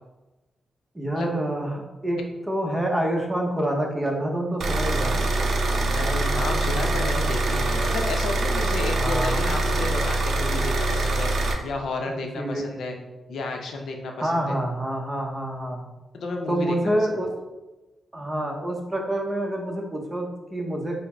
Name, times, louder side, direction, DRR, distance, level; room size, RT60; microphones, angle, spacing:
voice 1, 0.9-2.2 2.5-5.2 8.9-9.4 12.1-12.6 12.9-13.0 14.2-15.8 16.5-17.3 18.1-21.0, right 1 dB, 20° right, 1 dB, 0.8 m, -27 dB
sound 1, 4.6-11.5, right 2 dB, 70° right, 0.5 m, -24 dB
voice 2, 5.7-11.3 11.6-13.0 13.3-14.6 16.1-17.1, left 3 dB, 80° left, 3 dB, 0.6 m, -32 dB
3.9 x 2.0 x 4.3 m, 1.1 s
cardioid pair, 80°, 0 cm